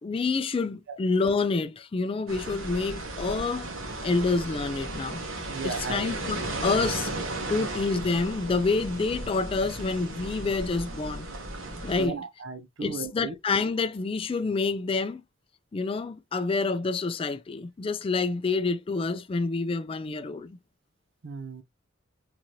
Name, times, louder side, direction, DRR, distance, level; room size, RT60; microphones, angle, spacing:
voice 1, 0.0-3.7 4.0-5.2 5.6-7.1 7.5-11.3 11.8-12.2 12.8-15.2 15.7-20.6, left 4 dB, 25° left, 0.3 m, -28 dB
sound 1, 2.3-12.1, right 2 dB, 80° right, 1.3 m, -35 dB
voice 2, 5.5-6.1 7.5-7.7 12.0-13.4 21.2-21.6, right 4 dB, 60° right, 0.5 m, -36 dB
3.8 x 2.7 x 3.0 m
head